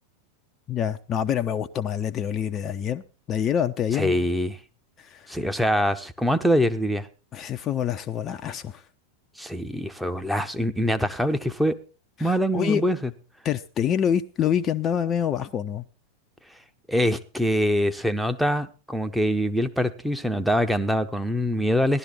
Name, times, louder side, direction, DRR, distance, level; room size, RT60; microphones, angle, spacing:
voice 1, 0.7-3.0 3.3-4.2 5.0-5.3 7.3-8.8 12.2-12.8 13.4-15.8, left 9 dB, 30° left, 8 dB, 0.6 m, -26 dB
voice 2, 3.9-4.6 5.3-7.1 9.4-11.8 12.2-13.0 16.9-22.0, equal, ahead, 7 dB, 0.9 m, -24 dB
15.5 x 12.0 x 4.2 m, 0.34 s
figure-of-eight pair, 90°, 0 cm